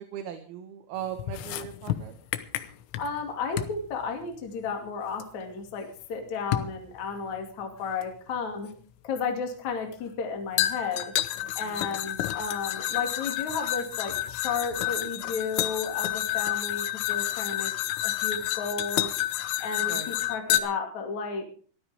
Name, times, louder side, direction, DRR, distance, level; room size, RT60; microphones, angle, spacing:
voice 1, 0.0-2.1 11.6-12.1 19.8-20.1, right 10 dB, 65° right, 7 dB, 2.8 m, -39 dB
sound 1, 1.2-3.2 3.6-3.8 5.2-5.3 6.5-6.8 8.0-8.1 10.6-20.6, left 14 dB, 85° left, 3.4 m, -29 dB
voice 2, 3.0-8.7 9.0-11.1 11.6-17.7 18.0-19.1 19.6-21.5, left 5 dB, 45° left, 3 dB, 3.1 m, -33 dB
22.5 x 14.0 x 3.5 m, 0.43 s
omnidirectional pair, 5.4 m